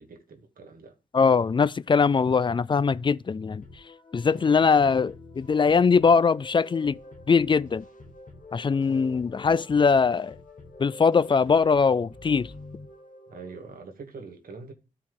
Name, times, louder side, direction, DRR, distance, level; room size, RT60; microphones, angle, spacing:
voice 1, 0.0-0.9 4.2-4.5 13.3-14.7, right 4 dB, 70° right, 1.5 m, -44 dB
voice 2, 1.1-3.6 4.1-7.0 7.3-7.8 8.5-10.3 10.8-12.5, left 5 dB, 30° left, 0.4 m, -21 dB
sound 1, 3.6-13.7, left 2 dB, 60° left, 1.3 m, -47 dB
12.5 x 4.4 x 3.6 m
cardioid pair, 65°, 15 cm